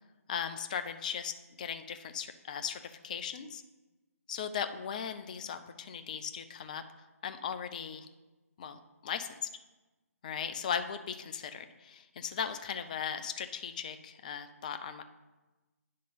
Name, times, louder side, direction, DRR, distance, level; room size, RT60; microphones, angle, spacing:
voice 1, 0.3-1.3 1.6-3.6 4.3-6.8 7.2-8.1 8.6-9.5 10.2-15.0, left 7 dB, 30° left, 9 dB, 0.5 m, -37 dB
9.7 x 3.8 x 5.4 m, 1.1 s
figure-of-eight pair, 140°, 9 cm